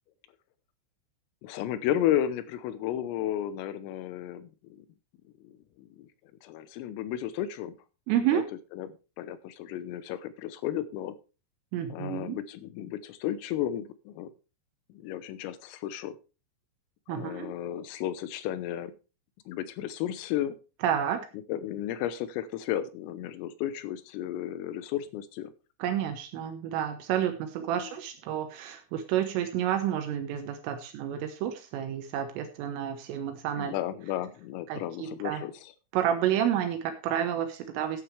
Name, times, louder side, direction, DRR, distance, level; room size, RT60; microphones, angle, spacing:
voice 1, 1.4-4.8 5.4-5.5 5.8-6.1 6.4-7.8 8.3-8.4 8.7-11.2 11.9-14.3 14.9-16.2 17.1-18.9 19.5-20.6 21.5-25.5 27.7-27.9 33.6-35.7, left 11 dB, 85° left, 13 dB, 3.6 m, -33 dB
voice 2, 8.1-8.4 11.7-12.4 17.1-17.6 20.8-21.3 25.8-33.8 34.7-35.4 35.9-38.0, right 10 dB, 80° right, 6 dB, 3.6 m, -30 dB
15.0 x 9.2 x 3.3 m, 0.32 s
omnidirectional pair, 5.9 m